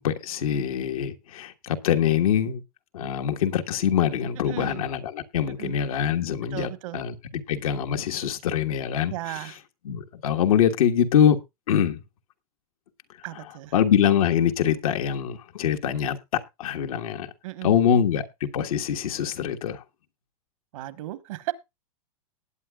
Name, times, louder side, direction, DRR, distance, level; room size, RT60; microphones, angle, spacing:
voice 1, 0.0-2.6 2.9-7.1 7.5-9.1 9.8-11.4 11.7-12.0 13.7-16.2 16.6-17.3 17.6-19.8, left 9 dB, 75° left, 1.5 m, -24 dB
voice 2, 4.5-4.8 5.6-5.7 6.5-7.0 9.1-9.6 13.2-13.8 17.4-18.0 20.7-21.5, right 16 dB, 65° right, 1.4 m, -35 dB
19.0 x 8.7 x 2.3 m
hypercardioid pair, 130°, 18 cm